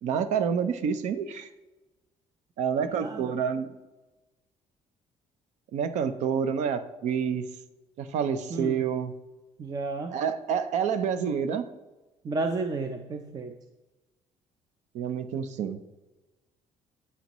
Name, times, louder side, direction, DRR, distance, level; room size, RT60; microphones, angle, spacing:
voice 1, 0.0-1.5 2.6-3.7 5.7-7.4 8.0-9.1 10.1-11.7 14.9-15.8, right 7 dB, 75° right, 11 dB, 0.7 m, -28 dB
voice 2, 3.0-3.3 8.5-8.8 9.6-10.1 12.2-13.5, right 3 dB, 35° right, 6 dB, 0.6 m, -32 dB
9.3 x 8.4 x 3.0 m, 1.1 s
cardioid pair, 135°, 12 cm